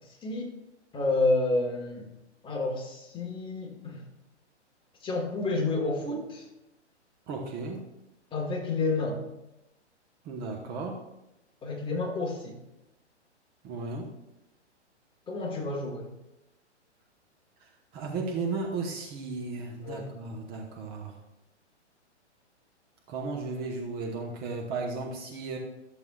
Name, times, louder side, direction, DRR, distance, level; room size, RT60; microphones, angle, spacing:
voice 1, 0.0-0.5 0.9-2.1 2.4-4.0 5.0-6.5 8.3-9.2 11.6-12.6 15.3-16.1 19.8-20.1, left 2 dB, 15° left, 0 dB, 1.5 m, -30 dB
voice 2, 7.3-7.8 10.2-11.0 13.6-14.1 17.6-21.2 23.1-25.6, right 3 dB, 25° right, 1 dB, 1.1 m, -35 dB
13.5 x 7.0 x 2.4 m, 0.90 s
hypercardioid pair, 120°, 35 cm